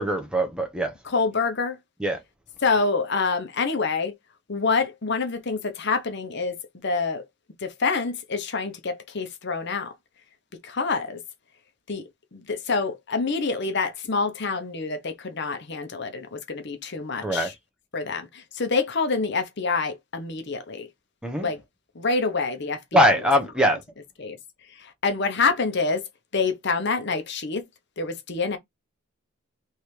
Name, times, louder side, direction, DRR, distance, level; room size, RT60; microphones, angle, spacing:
voice 1, 0.0-0.9 2.0-2.2 17.2-17.5 21.2-21.5 22.9-23.8, equal, 5° right, 1.0 m, -22 dB
voice 2, 1.0-1.8 2.6-4.1 4.5-6.6 6.8-7.2 7.6-9.9 10.6-11.2 11.9-12.0 12.3-17.5 17.9-20.9 21.4-21.6 22.0-23.2 24.2-24.4 24.8-26.0 26.3-27.6 28.0-28.6, left 4 dB, 55° left, 0.9 m, -26 dB
3.4 x 3.2 x 4.5 m
head